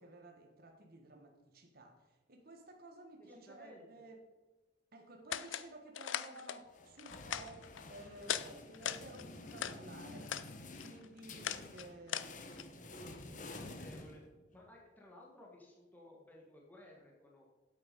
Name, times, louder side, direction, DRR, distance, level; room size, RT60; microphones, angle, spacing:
voice 1, 0.0-4.2 4.9-13.0, right 2 dB, 50° right, 1.4 m, -54 dB
voice 2, 3.2-3.9 13.3-14.2 14.5-17.5, left 1 dB, 10° left, 1.6 m, -57 dB
sound 1, 5.3-5.7 5.9-6.6 7.0-7.8 8.2-8.5 8.7-9.8 10.2-10.5 10.8-12.6, left 9 dB, 80° left, 0.5 m, -40 dB
sound 2, 6.7-14.7, left 2 dB, 40° left, 1.0 m, -50 dB
8.4 x 8.3 x 5.2 m
head